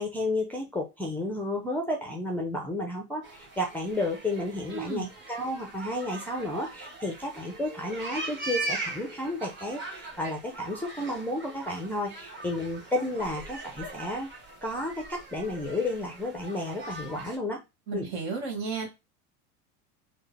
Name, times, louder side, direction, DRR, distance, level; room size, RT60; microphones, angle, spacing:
voice 1, 0.0-14.3 14.6-17.6 17.9-18.1, left 1 dB, 5° left, 2 dB, 0.6 m, -32 dB
sound 1, 3.2-17.4, right 2 dB, 25° right, 1.5 m, -40 dB
voice 2, 4.7-5.1 17.9-18.9, right 5 dB, 55° right, 2 dB, 1.9 m, -33 dB
3.5 x 2.2 x 3.3 m, 0.23 s
hypercardioid pair, 90°, 45 cm